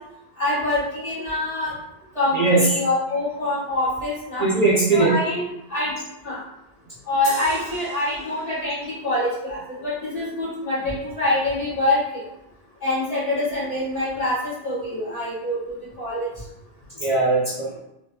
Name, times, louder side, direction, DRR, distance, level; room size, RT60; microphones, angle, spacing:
voice 1, 0.4-1.7 2.1-4.5 4.9-5.4 5.7-5.9 6.2-6.4 7.1-12.0 12.8-16.3, left 1 dB, 35° left, -9 dB, 1.7 m, -25 dB
voice 2, 2.3-2.6 4.4-5.1 17.0-17.8, right 3 dB, 45° right, -6 dB, 0.6 m, -19 dB
sound 1, 7.2-8.9, equal, 65° left, 1.3 m, -38 dB
3.5 x 2.9 x 2.2 m, 0.82 s
omnidirectional pair, 1.1 m